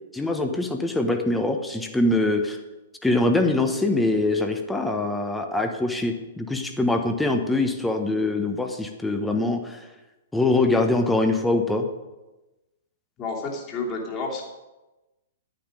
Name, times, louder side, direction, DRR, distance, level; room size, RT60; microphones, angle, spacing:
voice 1, 0.1-2.6 3.0-9.8 10.3-11.9, left 2 dB, 5° left, 5 dB, 1.2 m, -23 dB
voice 2, 13.2-14.4, left 3 dB, 25° left, -1 dB, 2.9 m, -30 dB
11.5 x 9.6 x 5.2 m, 1.1 s
figure-of-eight pair, 110°, 0 cm